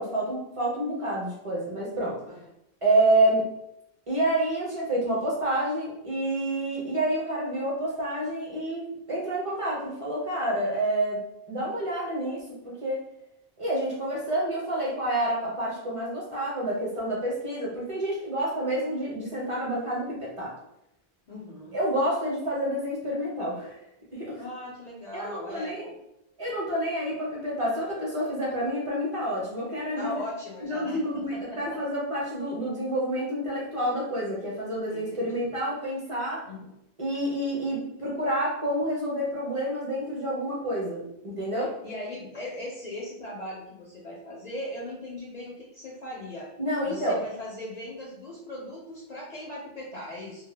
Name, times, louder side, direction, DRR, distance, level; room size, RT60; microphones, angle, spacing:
voice 1, 0.0-2.2 2.8-3.5 4.1-11.2 11.5-13.0 13.6-20.5 21.7-23.8 24.1-24.4 25.1-25.8 26.4-30.2 30.7-36.4 37.0-41.7 46.6-47.2, right 1 dB, 40° right, -5 dB, 0.6 m, -28 dB
voice 2, 21.3-21.8 24.3-26.0 30.0-31.8 34.9-35.5 36.4-36.7 41.6-46.5 46.8-50.4, left 1 dB, 55° left, -3 dB, 0.5 m, -39 dB
2.1 x 2.0 x 3.2 m, 0.82 s
omnidirectional pair, 1.0 m